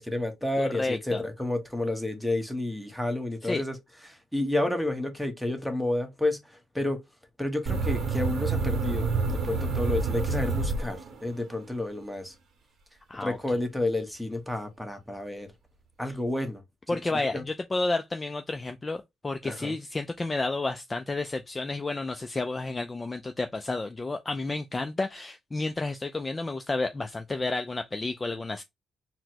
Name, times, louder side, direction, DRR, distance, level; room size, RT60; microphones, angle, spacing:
voice 1, 0.0-3.7 4.1-6.4 6.7-7.0 7.4-12.3 13.1-15.5 16.0-16.6 16.9-17.0 17.3-17.4 19.4-19.7, left 2 dB, ahead, 0.9 m, -30 dB
voice 2, 0.6-1.2 3.4-3.6 13.1-13.4 16.9-28.6, left 2 dB, 25° left, 0.3 m, -31 dB
sound 1, 7.7-11.4, right 4 dB, 65° right, 0.7 m, -28 dB
4.1 x 2.0 x 2.8 m
cardioid pair, 90°, 0 cm